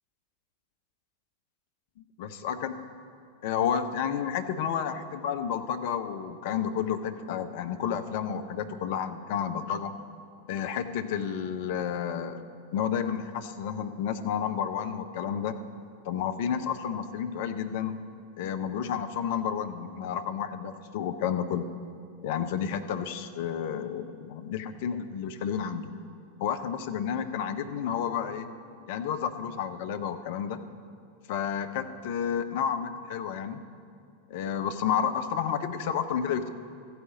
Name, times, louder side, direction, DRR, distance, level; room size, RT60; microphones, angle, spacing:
voice 1, 2.2-2.7 3.4-9.9 10.5-12.4 12.7-15.6 16.0-18.0 18.4-21.7 22.2-26.0 26.4-28.5 28.9-30.6 31.3-33.6 34.3-36.5, left 8 dB, 50° left, 9 dB, 0.6 m, -31 dB
14.0 x 5.0 x 7.6 m, 2.4 s
figure-of-eight pair, 90°, 0 cm